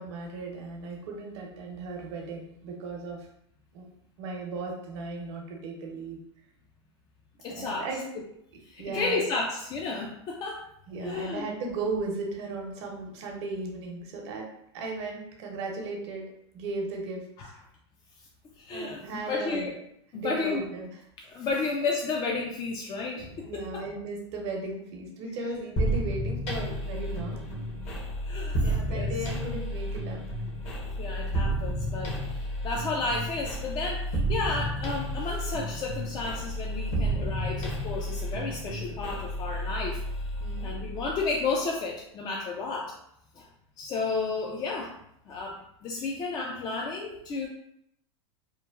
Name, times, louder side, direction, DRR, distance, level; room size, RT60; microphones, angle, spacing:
voice 1, 0.0-3.3 3.7-3.9 4.2-6.2 7.5-8.0 8.8-9.2 10.9-14.5 14.7-17.5 18.7-19.7 20.1-20.9 23.4-27.5 28.6-30.2 32.1-32.2 36.8-37.2 40.4-40.7, right 3 dB, 65° right, 0 dB, 0.8 m, -36 dB
voice 2, 7.4-7.9 8.6-10.7 11.0-11.5 17.4-17.5 18.6-19.7 20.1-20.6 21.3-23.8 28.3-29.1 31.0-40.0 40.6-43.0 43.4-43.5 43.8-44.9 45.3-47.5, left 3 dB, 25° left, -1 dB, 0.4 m, -32 dB
sound 1, 25.8-41.4, equal, 45° left, 0.8 m, -31 dB
2.9 x 2.1 x 2.3 m, 0.74 s
hypercardioid pair, 120°, 15 cm